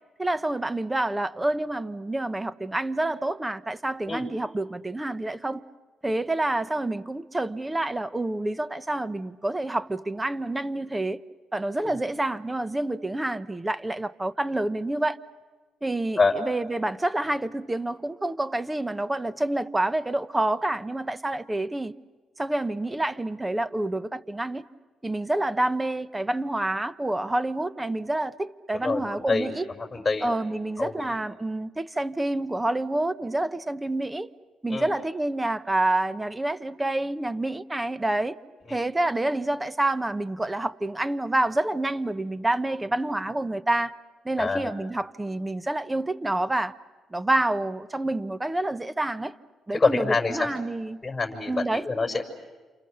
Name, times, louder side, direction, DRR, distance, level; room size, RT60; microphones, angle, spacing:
voice 1, 0.2-5.6 6.0-11.2 11.5-15.2 15.8-21.9 22.4-24.7 25.0-29.7 30.2-34.3 34.6-38.4 38.7-43.9 44.2-46.7 47.1-49.4 49.7-51.0 51.5-51.9, right 2 dB, 15° right, 0.9 m, -28 dB
voice 2, 28.7-29.5 29.8-30.3 30.8-31.1 34.7-34.9 38.7-38.8 44.4-44.7 49.7-50.5 51.0-52.2, left 4 dB, 20° left, 5.7 m, -26 dB
29.5 x 28.5 x 6.7 m
cardioid pair, 90°, 0 cm